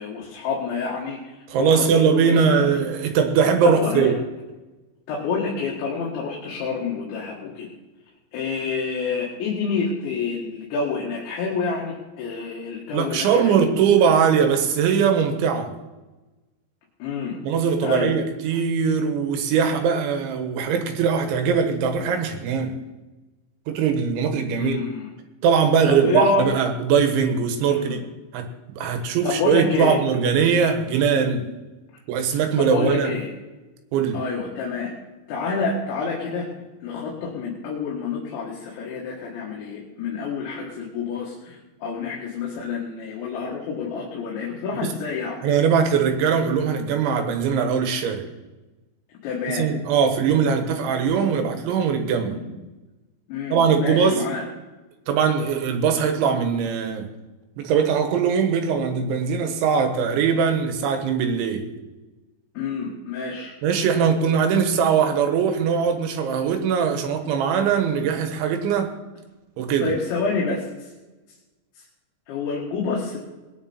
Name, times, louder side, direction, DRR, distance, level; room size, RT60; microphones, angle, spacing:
voice 1, 0.0-2.8 3.6-4.1 5.1-7.7 8.3-13.8 17.0-17.4 17.8-18.2 24.6-25.1 25.9-26.5 27.7-28.0 29.0-30.0 32.6-33.3 34.1-34.9 35.3-36.5 36.8-45.4 49.2-49.7 52.3-52.5 53.3-54.4 62.6-63.5 69.8-70.9 71.8-71.9 72.3-73.2, left 4 dB, 80° left, -3 dB, 4.1 m, -28 dB
voice 2, 1.5-4.2 12.9-15.7 17.4-22.8 23.7-24.8 25.4-28.1 28.3-31.5 32.1-33.1 33.9-34.2 44.8-44.9 45.4-48.3 49.5-52.4 53.5-54.2 55.1-57.1 57.6-61.7 63.6-68.9 69.6-69.9, right 6 dB, 90° right, 6 dB, 3.7 m, -21 dB
20.0 x 10.0 x 4.3 m, 1.1 s
omnidirectional pair, 5.2 m